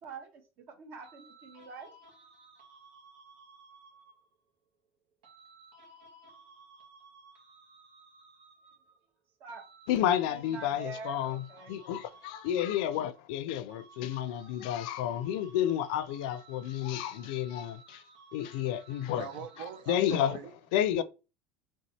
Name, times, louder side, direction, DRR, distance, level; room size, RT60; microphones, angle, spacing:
voice 1, 0.0-2.0 9.4-9.7 10.3-11.7, right 4 dB, 50° right, 1.3 m, -45 dB
sound 1, 1.0-4.4 5.2-9.0 9.5-13.4 13.7-20.0, right 3 dB, 90° right, 1.9 m, -57 dB
voice 2, 9.9-18.0 18.3-19.3 19.9-20.4 20.7-21.0, left 11 dB, 75° left, 0.4 m, -31 dB
voice 3, 19.1-20.5 21.0-21.1, right 8 dB, 70° right, 0.6 m, -41 dB
4.1 x 3.3 x 3.3 m
supercardioid pair, 135°, 5 cm